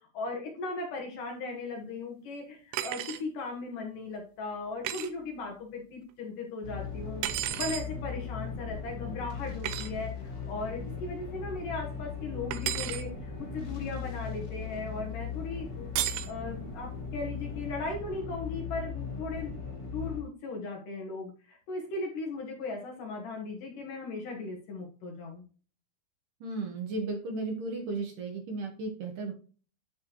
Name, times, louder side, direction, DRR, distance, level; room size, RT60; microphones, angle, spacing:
voice 1, 0.1-7.3 7.6-19.6 19.9-25.4, left 3 dB, 60° left, 0 dB, 2.6 m, -37 dB
sound 1, 2.7-3.2 4.8-5.1 7.2-7.9 9.6-9.9 12.5-13.0 16.0-16.3, right 13 dB, 80° right, 2.7 m, -32 dB
sound 2, 6.6-20.2, left 6 dB, 80° left, 0.8 m, -38 dB
voice 2, 26.4-29.3, right 3 dB, 65° right, 2 dB, 2.2 m, -35 dB
13.0 x 4.3 x 3.0 m, 0.38 s
omnidirectional pair, 5.2 m